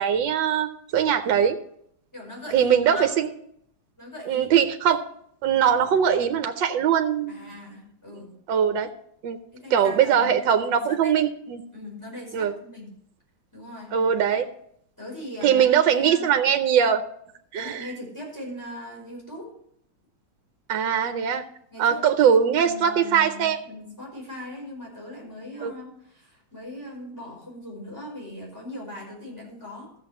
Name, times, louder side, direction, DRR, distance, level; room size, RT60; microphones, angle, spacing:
voice 1, 0.0-1.6 2.5-3.3 4.3-5.0 5.4-7.6 8.5-8.9 9.2-9.4 9.7-11.6 12.3-12.5 13.9-14.5 15.4-17.0 17.5-17.9 20.7-21.4 21.8-23.6 25.6-25.7, right 8 dB, 80° right, 8 dB, 1.4 m, -21 dB
voice 2, 2.1-3.1 4.0-4.5 7.3-8.3 9.5-10.3 10.6-11.2 11.7-12.9 13.5-14.0 15.0-16.3 17.5-19.5 21.7-29.9, left 1 dB, 10° left, -4 dB, 5.2 m, -39 dB
14.0 x 7.1 x 4.9 m, 0.70 s
omnidirectional pair, 2.0 m